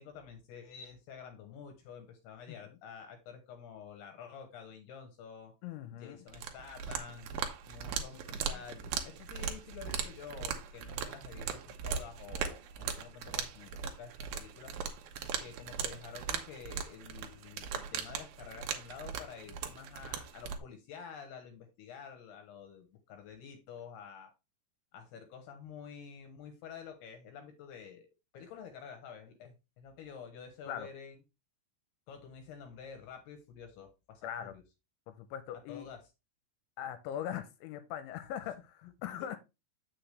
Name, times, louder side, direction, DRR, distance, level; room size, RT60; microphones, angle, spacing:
voice 1, 0.0-5.5 5.9-7.3 7.7-14.7 15.4-24.3 24.9-28.1 28.3-31.2 32.1-34.6 35.7-36.0 39.0-39.3, left 7 dB, 70° left, 5 dB, 2.9 m, -49 dB
voice 2, 2.5-2.8 5.6-6.2 8.4-8.6 30.7-30.9 34.2-34.5 35.2-35.9 36.8-39.4, left 10 dB, 85° left, 10 dB, 3.0 m, -41 dB
sound 1, 6.3-20.6, right 7 dB, 80° right, 2.2 m, -39 dB
7.9 x 6.6 x 3.3 m, 0.25 s
omnidirectional pair, 5.3 m